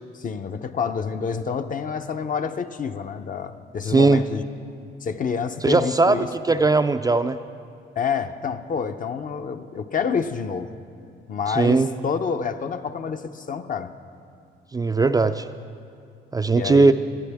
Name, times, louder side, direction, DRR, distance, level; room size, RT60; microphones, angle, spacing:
voice 1, 0.1-4.4 5.0-6.3 8.0-10.7 11.3-13.9 16.5-16.9, left 6 dB, 40° left, 8 dB, 0.6 m, -28 dB
voice 2, 3.9-4.2 5.6-7.4 11.5-11.9 14.7-15.5 16.3-16.9, right 3 dB, 20° right, 9 dB, 0.3 m, -19 dB
18.0 x 12.5 x 3.5 m, 2.4 s
cardioid pair, 90°, 20 cm